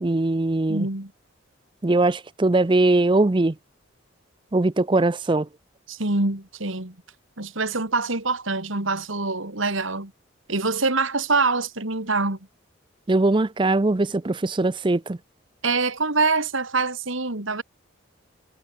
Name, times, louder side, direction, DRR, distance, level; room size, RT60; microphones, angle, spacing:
voice 1, 0.0-0.9 1.8-3.5 4.5-5.5 13.1-15.2, right 2 dB, 25° right, 0.5 m, -21 dB
voice 2, 0.7-1.1 5.9-6.9 7.4-10.1 10.5-12.4 15.6-17.6, right 3 dB, 75° right, 3.3 m, -25 dB
head